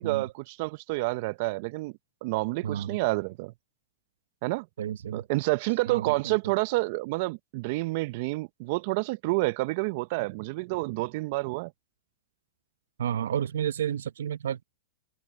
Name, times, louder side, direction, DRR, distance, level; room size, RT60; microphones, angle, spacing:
voice 1, 0.0-1.9 2.2-3.5 4.4-4.7 5.1-11.7, right 23 dB, 55° right, 0.6 m, -29 dB
voice 2, 2.6-3.0 4.8-5.2 5.9-6.4 13.0-14.6, right 9 dB, 75° right, 1.0 m, -31 dB
hypercardioid pair, 115°, 0 cm